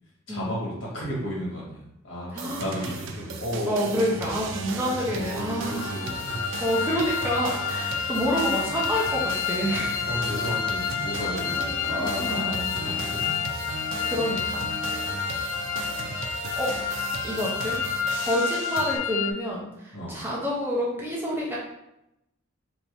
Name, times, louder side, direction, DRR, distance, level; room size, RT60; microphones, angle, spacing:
voice 1, 0.3-4.1 5.0-6.4 10.0-13.4 15.5-15.9 19.9-20.2, equal, 70° left, -5 dB, 1.4 m, -34 dB
voice 2, 2.3-2.9 3.7-6.1 6.6-10.1 11.2-12.5 14.1-14.7 15.2-15.5 16.6-16.8 17.2-17.8 18.2-21.6, equal, 10° right, -5 dB, 0.6 m, -28 dB
sound 1, 2.4-19.0, right 4 dB, 65° right, 0.4 m, -35 dB
sound 2, 5.7-19.3, left 8 dB, 85° left, 0.3 m, -30 dB
2.9 x 2.6 x 3.4 m, 0.85 s
head